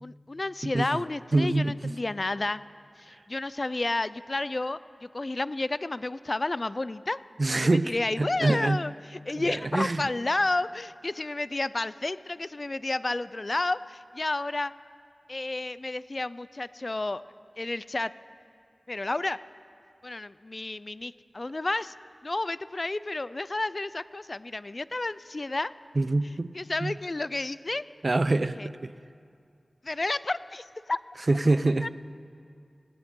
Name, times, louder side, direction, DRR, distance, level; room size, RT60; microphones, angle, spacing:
voice 1, 0.0-2.6 3.0-7.2 7.6-14.7 15.3-17.2 17.6-18.1 18.9-19.4 20.0-21.9 22.2-25.7 26.2-27.8 28.5-28.7 29.8-31.0 31.8-31.9, left 2 dB, 45° left, 16 dB, 0.3 m, -31 dB
voice 2, 1.3-1.9 7.4-7.9 8.2-8.8 9.7-10.0 26.0-26.5 26.8-26.9 28.0-28.9 31.3-31.9, right 2 dB, 50° right, 15 dB, 0.4 m, -25 dB
19.0 x 15.5 x 3.7 m, 2.3 s
wide cardioid pair, 60°, 0 cm